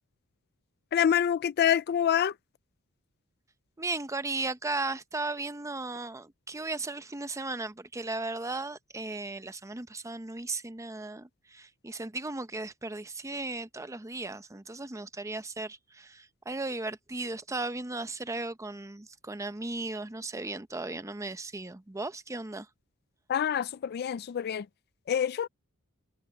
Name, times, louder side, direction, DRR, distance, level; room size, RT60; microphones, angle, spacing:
voice 1, 0.9-2.4 23.3-24.7 25.1-25.5, left 9 dB, 45° left, 0.3 m, -26 dB
voice 2, 3.8-22.7, right 2 dB, 15° right, 0.7 m, -36 dB
head